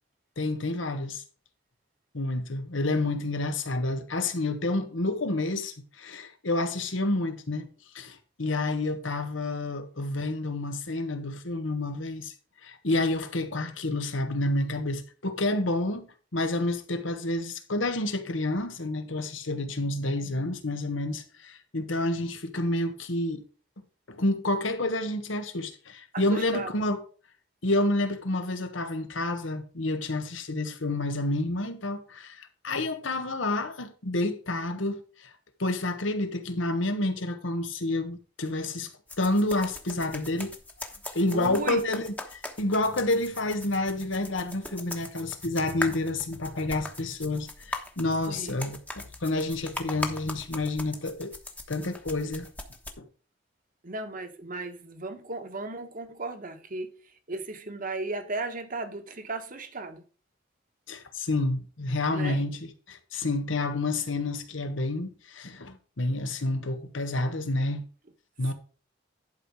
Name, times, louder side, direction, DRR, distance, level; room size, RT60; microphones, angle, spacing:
voice 1, 0.4-1.2 2.1-7.7 7.9-12.3 12.6-16.1 16.3-23.4 24.1-27.0 27.6-35.3 35.6-38.9 39.2-40.5 41.1-51.3 51.7-52.5 53.0-53.1 60.9-67.8 68.4-68.5, left 2 dB, 80° left, 1.4 m, -29 dB
voice 2, 26.1-26.7 41.3-41.9 48.3-48.6 53.8-56.9 57.3-60.0 62.1-62.4, right 2 dB, 45° right, 1.3 m, -36 dB
sound 1, 39.1-52.9, left 2 dB, 10° left, 1.1 m, -40 dB
11.0 x 4.9 x 4.8 m
head